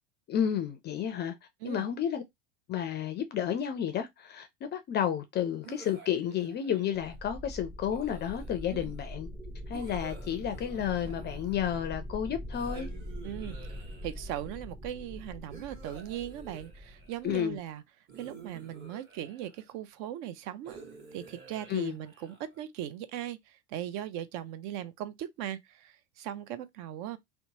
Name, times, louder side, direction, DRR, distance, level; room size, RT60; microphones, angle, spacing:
voice 1, 0.3-1.3 1.6-2.2 2.7-9.3 9.7-12.9 17.2-17.6 21.7-22.0, left 9 dB, 30° left, 0.4 m, -31 dB
sound 1, 5.6-7.2 7.9-8.8 9.7-11.9 12.5-14.4 15.5-17.3 18.1-19.7 20.6-22.6, right 5 dB, 30° right, 1.3 m, -51 dB
sound 2, 6.9-17.6, equal, 10° right, 0.8 m, -43 dB
voice 2, 13.2-13.6 14.0-17.8 18.2-20.8 21.1-27.2, right 11 dB, 50° right, 0.5 m, -39 dB
2.9 x 2.1 x 2.8 m
hypercardioid pair, 105°, 37 cm